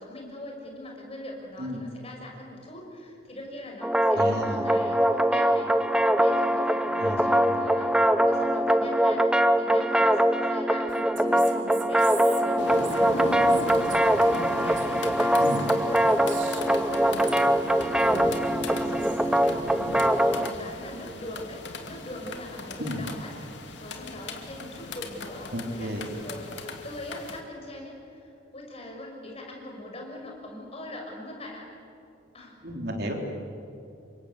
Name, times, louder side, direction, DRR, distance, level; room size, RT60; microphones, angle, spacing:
voice 1, 0.0-5.7 6.0-16.0 16.6-18.1 18.5-20.0 20.4-23.3 23.8-31.7 32.3-32.5, left 1 dB, 35° left, 0 dB, 5.9 m, -42 dB
sound 1, 3.8-20.5, right 1 dB, 5° right, 0.8 m, -23 dB
voice 2, 4.1-4.7 7.0-7.3 15.4-15.6 22.8-23.0 25.5-26.0 32.6-33.1, equal, 55° right, 2 dB, 3.7 m, -32 dB
Female speech woman speaking, 10.9-17.7 18.0-19.3, right 4 dB, 80° right, 3.0 m, -42 dB
sound 2, 12.6-27.4, left 2 dB, 70° left, 2.4 m, -38 dB
28.5 x 25.0 x 8.2 m, 2.7 s
head